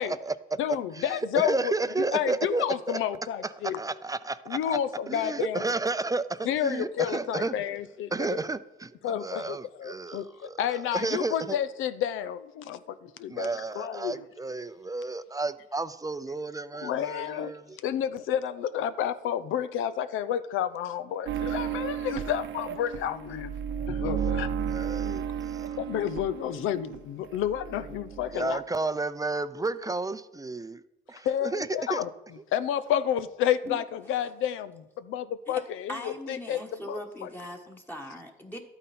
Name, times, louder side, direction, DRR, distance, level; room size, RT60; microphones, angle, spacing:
voice 1, 0.0-3.0 3.4-4.8 5.1-7.5 8.1-11.6 13.3-17.8 24.2-24.3 24.7-25.8 28.3-30.8 31.1-32.0, right 3 dB, 15° right, 13 dB, 0.5 m, -32 dB
voice 2, 0.6-1.7 2.1-3.8 4.5-5.6 6.5-8.1 9.0-13.5 13.7-14.2 16.8-17.5 17.8-23.5 23.9-24.5 25.8-28.6 31.2-32.1 32.5-36.6 36.9-37.3, left 10 dB, 90° left, 13 dB, 0.7 m, -30 dB
sound 1, 21.3-27.0 27.2-28.4, right 8 dB, 75° right, 0.9 m, -33 dB
voice 3, 35.9-38.6, equal, 10° left, 1 dB, 1.3 m, -40 dB
12.5 x 9.1 x 4.3 m, 0.94 s
cardioid pair, 90°, 20 cm